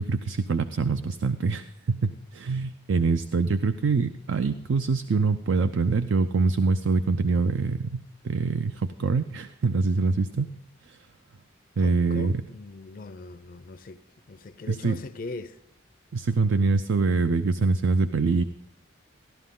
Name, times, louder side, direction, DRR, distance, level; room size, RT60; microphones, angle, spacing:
voice 1, 0.0-10.5 10.8-11.0 11.8-12.4 14.7-15.0 16.1-18.4, right 4 dB, 70° right, 0.5 m, -24 dB
voice 2, 11.8-14.0 14.3-15.6, left 3 dB, 45° left, 0.5 m, -40 dB
15.0 x 12.0 x 3.7 m
head